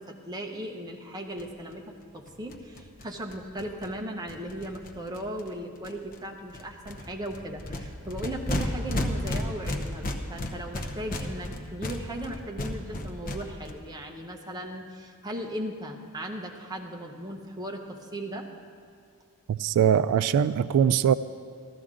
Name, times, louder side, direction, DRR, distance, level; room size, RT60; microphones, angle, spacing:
voice 1, 0.0-18.5, right 1 dB, 20° right, 1 dB, 0.9 m, -37 dB
sound 1, 1.4-1.5 1.7-1.8 2.0-2.1 2.3-5.5 5.8-6.2 6.5-13.7, left 1 dB, 40° left, 0.8 m, -34 dB
voice 2, 19.5-21.1, right 8 dB, 90° right, 16 dB, 0.3 m, -22 dB
14.5 x 13.0 x 3.7 m, 2.3 s
head